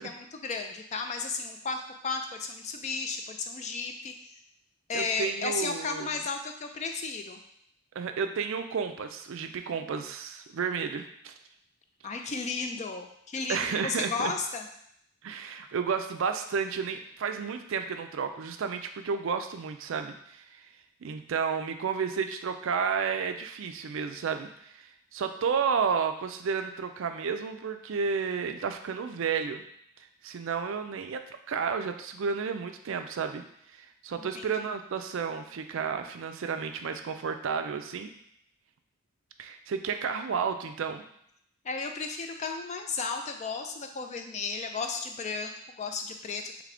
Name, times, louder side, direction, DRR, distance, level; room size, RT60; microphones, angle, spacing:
voice 1, 0.0-4.1 4.9-7.4 12.0-14.7 34.2-34.5 41.6-46.6, left 4 dB, 30° left, 5 dB, 0.3 m, -34 dB
voice 2, 4.9-6.1 8.0-11.3 13.5-14.3 15.2-20.4 21.0-29.6 30.2-31.2 31.5-33.4 33.7-38.1 39.4-41.0, right 6 dB, 65° right, 7 dB, 0.4 m, -32 dB
3.4 x 3.3 x 3.7 m, 0.71 s
head